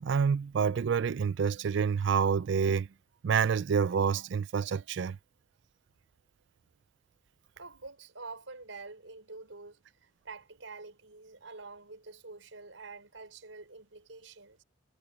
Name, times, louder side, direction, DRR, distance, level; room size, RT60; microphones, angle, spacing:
voice 1, 0.0-2.9 3.2-5.2, right 6 dB, 65° right, 0.4 m, -28 dB
voice 2, 7.6-14.6, right 3 dB, 80° right, 5.1 m, -47 dB
head